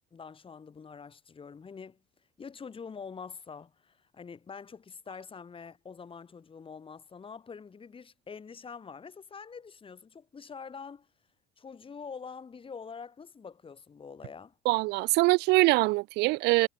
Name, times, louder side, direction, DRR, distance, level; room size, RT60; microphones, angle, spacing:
voice 1, 0.1-2.0 2.4-11.1 11.6-14.6, left 5 dB, 30° left, 6.3 m, -45 dB
voice 2, 14.7-16.7, right 23 dB, 75° right, 0.6 m, -23 dB
supercardioid pair, 95°, 18 cm